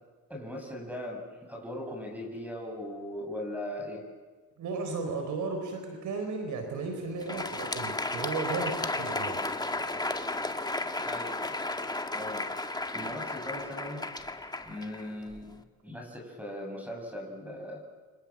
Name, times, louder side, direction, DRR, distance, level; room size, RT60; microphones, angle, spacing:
voice 1, 0.3-4.0 11.0-11.6 12.1-12.5 12.9-14.1 14.6-17.8, left 1 dB, 5° right, 2 dB, 7.6 m, -39 dB
voice 2, 4.6-9.4, right 3 dB, 75° right, 6 dB, 4.4 m, -34 dB
Crowd, 7.1-15.6, left 2 dB, 15° left, 1.8 m, -34 dB
29.0 x 25.5 x 7.5 m, 1.4 s
cardioid pair, 90°, 30 cm